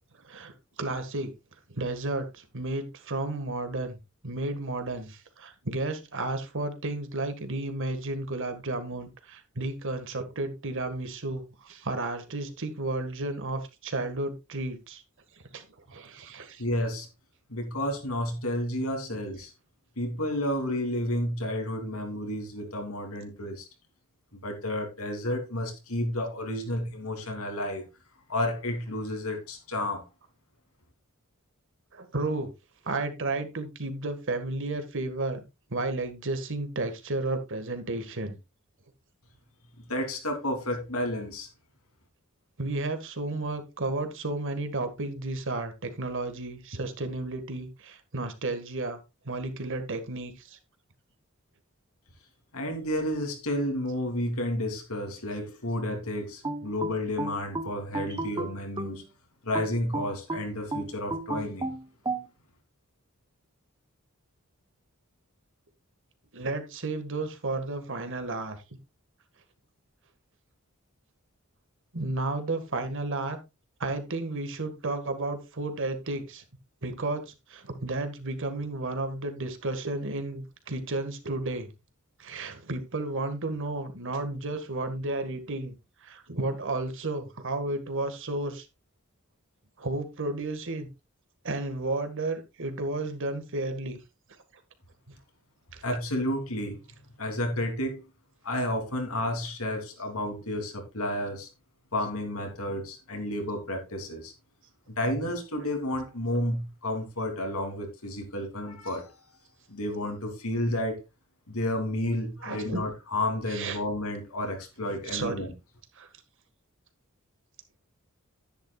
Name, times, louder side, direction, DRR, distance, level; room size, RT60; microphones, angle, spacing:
voice 1, 0.8-1.3 1.7-15.0 15.5-16.6 31.9-32.5 32.8-35.4 35.7-38.4 42.6-49.0 49.3-50.6 66.3-68.6 71.9-73.4 73.8-76.4 76.8-81.7 82.2-85.7 86.0-88.7 89.8-90.9 91.4-94.0 95.1-95.2 95.7-96.0 112.4-112.8 113.5-113.8 114.9-115.5 116.0-116.1, right 2 dB, 60° right, 1.7 m, -32 dB
voice 2, 16.6-17.1 17.5-19.5 20.0-23.7 24.3-27.8 28.3-30.0 39.8-41.5 52.5-59.0 59.4-61.7 95.8-96.8 97.2-98.0 98.4-101.5 101.9-104.3 105.0-109.4 109.7-111.0 111.5-115.5, left 1 dB, 75° left, 3.1 m, -31 dB
sound 1, 56.4-59.0 59.5-62.3, right 2 dB, 20° right, 0.9 m, -33 dB
11.0 x 10.5 x 2.4 m
head